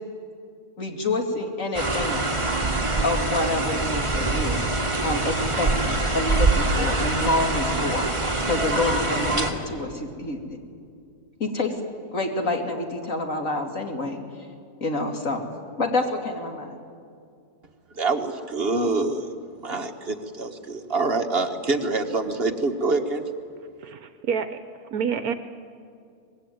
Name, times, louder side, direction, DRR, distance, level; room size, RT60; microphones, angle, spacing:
voice 1, 0.8-2.2 3.0-4.6 5.0-8.1 8.4-10.4 11.4-11.7 12.1-14.2 14.8-15.4 15.8-16.8, left 2 dB, 55° left, 3 dB, 3.0 m, -27 dB
sound 1, 1.7-9.5, right 2 dB, 20° right, 2.1 m, -24 dB
voice 2, 17.9-19.3 19.6-23.2, right 3 dB, 40° right, 6 dB, 1.5 m, -25 dB
voice 3, 23.8-24.6 24.9-25.3, right 7 dB, 70° right, 10 dB, 1.3 m, -27 dB
24.5 x 20.5 x 9.3 m, 2.3 s
omnidirectional pair, 1.7 m